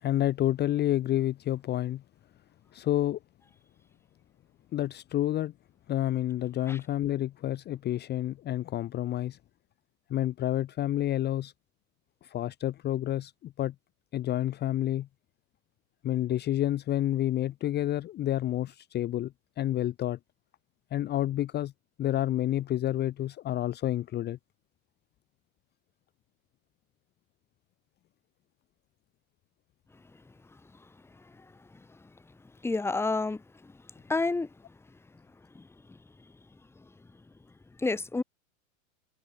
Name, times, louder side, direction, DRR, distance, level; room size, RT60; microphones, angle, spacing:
voice 1, 0.0-2.0 2.7-3.2 4.7-5.5 5.9-9.4 10.1-11.5 12.2-13.7 14.1-15.1 16.0-20.2 20.9-21.7 22.0-24.4, left 13 dB, 25° left, 1.0 m, -29 dB
voice 2, 32.6-33.4 34.1-34.5 37.8-38.2, left 3 dB, 5° left, 1.5 m, -28 dB
supercardioid pair, 135°, 41 cm